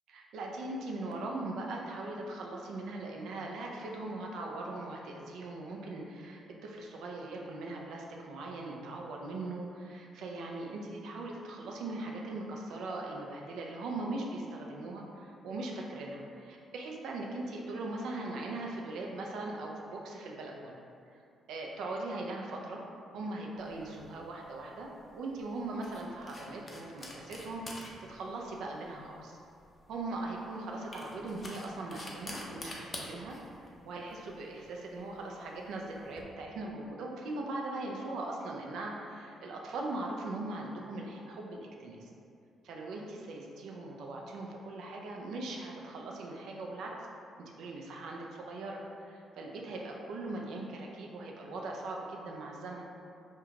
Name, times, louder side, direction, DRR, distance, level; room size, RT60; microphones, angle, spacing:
voice 1, 0.1-20.8 21.5-22.8 23.1-29.4 29.9-33.4 33.8-42.1 42.6-47.1 47.4-52.9, right 2 dB, 80° right, -1 dB, 0.4 m, -40 dB
sound 1, 23.6-36.2, left 1 dB, 35° left, 0.4 m, -48 dB
2.3 x 2.2 x 3.1 m, 2.5 s
cardioid pair, 90°, 0 cm